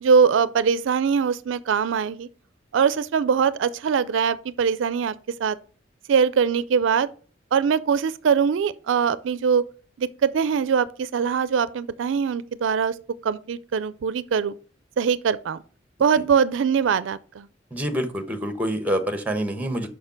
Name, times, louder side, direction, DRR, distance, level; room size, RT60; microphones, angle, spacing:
voice 1, 0.0-2.3 2.7-5.1 5.4-5.6 6.1-7.1 7.5-9.6 10.0-12.9 13.2-14.5 15.0-15.6 16.0-17.5, right 6 dB, 75° right, 0.4 m, -22 dB
voice 2, 17.7-19.9, equal, 10° right, 1.0 m, -26 dB
6.5 x 5.5 x 5.8 m
head